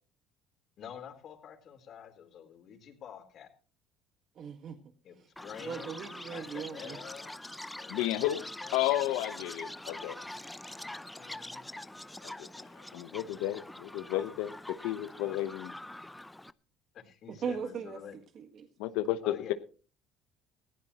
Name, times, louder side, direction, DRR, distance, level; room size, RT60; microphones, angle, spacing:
voice 1, 0.8-3.5 5.0-6.0 6.3-7.3 7.8-9.0 11.1-11.7 16.9-18.2 19.2-19.5, left 8 dB, 55° left, 5 dB, 3.9 m, -48 dB
voice 2, 4.4-4.8 5.6-7.0 17.3-18.0 18.3-18.7, right 6 dB, 55° right, 7 dB, 1.6 m, -38 dB
Chirp tweet, 5.4-16.5, left 1 dB, 10° left, 0.6 m, -44 dB
voice 3, 7.9-8.4 8.7-10.2 12.2-12.5 12.8-15.7 18.8-19.5, left 14 dB, 80° left, 11 dB, 0.9 m, -32 dB
20.0 x 15.0 x 3.0 m, 0.38 s
supercardioid pair, 85°, 0 cm